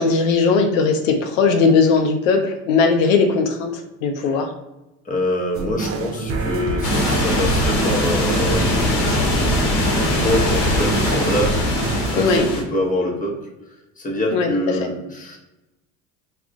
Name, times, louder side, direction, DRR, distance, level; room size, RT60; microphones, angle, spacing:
voice 1, 0.0-4.5 12.2-12.5 14.3-14.5, left 4 dB, 85° left, 5 dB, 0.5 m, -18 dB
voice 2, 5.0-11.6 12.1-15.4, left 1 dB, 20° left, 0 dB, 0.7 m, -26 dB
sound 1, 5.5-12.4, right 3 dB, 35° right, 0.5 m, -26 dB
sound 2, 6.8-12.6, left 1 dB, 70° left, 0.9 m, -21 dB
2.3 x 2.1 x 3.6 m, 0.96 s
supercardioid pair, 85°, 39 cm